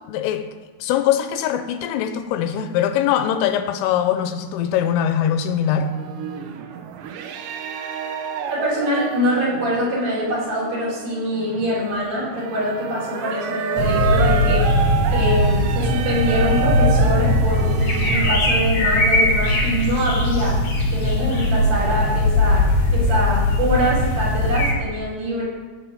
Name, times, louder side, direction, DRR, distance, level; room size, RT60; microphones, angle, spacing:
voice 1, 0.1-0.5 0.8-5.9, left 9 dB, 85° left, 9 dB, 3.2 m, -22 dB
sound 1, 5.8-18.3, right 7 dB, 75° right, 2.8 m, -29 dB
voice 2, 8.5-14.7 15.1-20.6 20.9-25.4, equal, 45° right, -7 dB, 5.8 m, -24 dB
sound 2, 13.8-24.7, left 1 dB, 65° left, 1.6 m, -19 dB
16.5 x 5.6 x 7.8 m, 1.4 s
omnidirectional pair, 5.9 m